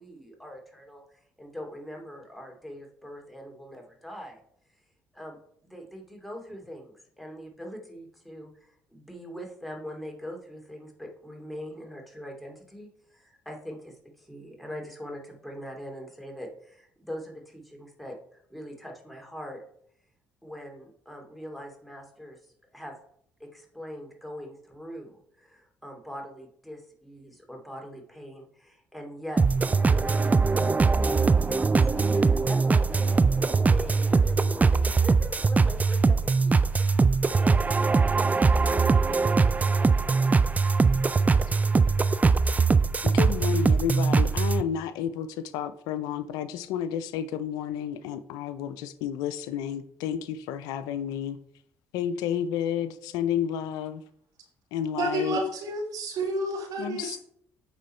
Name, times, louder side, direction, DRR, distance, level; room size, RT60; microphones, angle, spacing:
voice 1, 0.0-4.4 5.1-5.4 5.6-19.6 20.4-22.4 22.7-23.0 23.4-36.6 37.1-38.3, equal, ahead, 2.6 m, -42 dB
sound 1, 29.4-44.6, right 4 dB, 25° right, 0.4 m, -22 dB
voice 2, 43.0-51.4 51.9-54.0 54.7-55.4 56.8-57.2, left 9 dB, 80° left, 0.5 m, -31 dB
voice 3, 55.0-57.2, right 1 dB, 70° right, 1.5 m, -30 dB
9.3 x 3.8 x 4.4 m
supercardioid pair, 65°, 7 cm